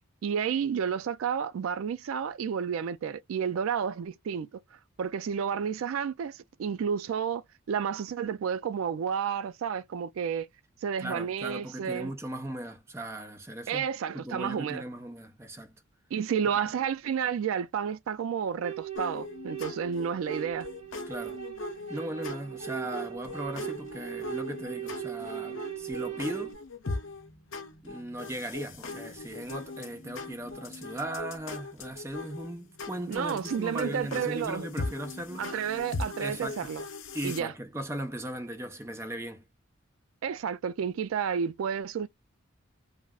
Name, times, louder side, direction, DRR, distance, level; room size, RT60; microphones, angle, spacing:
voice 1, 0.2-4.6 5.0-7.4 7.7-10.5 10.8-12.1 13.7-14.8 16.1-20.7 33.1-34.6 35.4-36.8 37.2-37.5 40.2-42.1, right 7 dB, 80° right, 0.3 m, -31 dB
voice 2, 11.0-13.8 14.1-15.8 21.1-21.4 21.9-26.6 27.8-35.5 36.2-36.7 37.1-39.4, right 1 dB, 10° right, 0.5 m, -38 dB
sound 1, 18.6-26.5, right 12 dB, 35° right, 1.0 m, -39 dB
sound 2, 18.9-37.4, left 3 dB, 70° left, 0.7 m, -40 dB
2.3 x 2.0 x 3.4 m
head